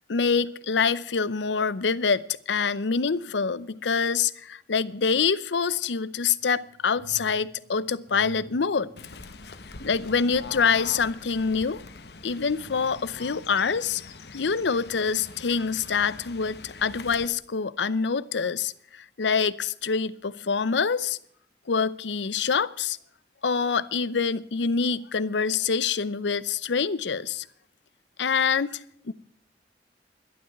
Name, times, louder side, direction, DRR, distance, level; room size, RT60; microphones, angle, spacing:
voice 1, 0.0-8.9 9.8-11.8 12.2-14.0 14.3-21.2 21.7-23.0 23.4-27.5 28.2-29.1, left 5 dB, 85° left, 0.6 m, -26 dB
sound 1, 6.2-12.0 12.5-13.6 14.1-14.2, right 2 dB, 70° right, 3.2 m, -52 dB
Fowl / Bird, 9.0-17.3, left 4 dB, 65° left, 1.0 m, -43 dB
12.0 x 11.5 x 5.9 m
head